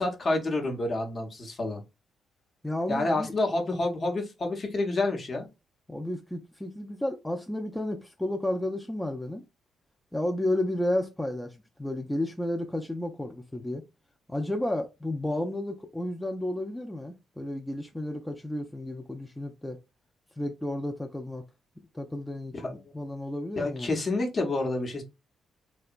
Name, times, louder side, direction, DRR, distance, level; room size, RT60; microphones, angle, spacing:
voice 1, 0.0-1.8 2.9-5.5 22.6-22.8 23.6-25.0, left 2 dB, 45° left, 0.8 m, -28 dB
voice 2, 2.6-3.3 5.9-9.4 10.1-13.9 14.3-19.8 20.4-21.4 21.9-23.9, left 1 dB, 10° left, 0.4 m, -32 dB
2.8 x 2.1 x 2.5 m
hypercardioid pair, 50°, 0 cm